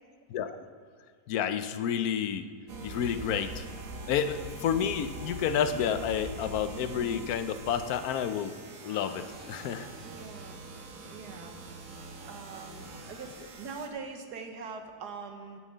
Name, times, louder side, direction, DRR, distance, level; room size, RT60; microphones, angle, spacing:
voice 1, 1.3-2.5 2.8-3.6 4.1-8.5 8.8-9.9, left 8 dB, 70° left, 11 dB, 1.1 m, -30 dB
sound 1, 2.7-13.9, right 3 dB, 60° right, 1.5 m, -43 dB
voice 2, 10.0-10.6 11.1-11.6 12.3-15.6, right 4 dB, 80° right, 5 dB, 1.6 m, -43 dB
9.0 x 6.5 x 8.1 m, 2.1 s
omnidirectional pair, 1.7 m